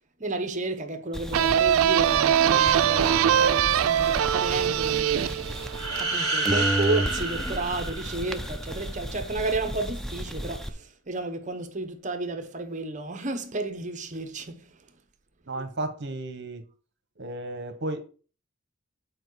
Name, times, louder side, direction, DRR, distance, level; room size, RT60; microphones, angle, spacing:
voice 1, 0.2-5.5 6.0-14.8, right 2 dB, 35° right, 0.9 m, -32 dB
sound 1, 1.1-6.2 6.5-10.7, right 1 dB, ahead, 0.5 m, -33 dB
sound 2, 1.3-6.8, right 9 dB, 80° right, 0.4 m, -23 dB
sound 3, 5.7-8.6, right 2 dB, 20° left, 4.1 m, -29 dB
voice 2, 15.5-16.6 17.2-18.1, right 2 dB, 55° right, 1.2 m, -33 dB
9.1 x 4.6 x 4.8 m
head